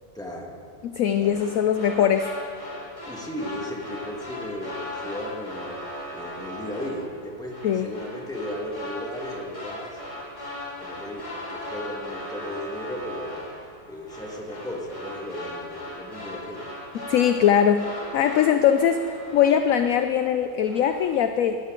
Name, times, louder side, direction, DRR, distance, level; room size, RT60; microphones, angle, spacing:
voice 1, 0.1-0.6 1.2-1.8 3.0-5.8 6.1-10.0 10.8-13.5 13.9-16.7, equal, ahead, -2 dB, 1.7 m, -35 dB
voice 2, 0.8-2.3 7.6-7.9 17.1-19.0 19.3-21.6, left 9 dB, 70° left, 9 dB, 0.8 m, -21 dB
sound 1, 1.2-20.3 20.6-21.2, left 1 dB, 20° left, 2.4 m, -38 dB
17.5 x 12.5 x 3.9 m, 2.3 s
omnidirectional pair, 1.9 m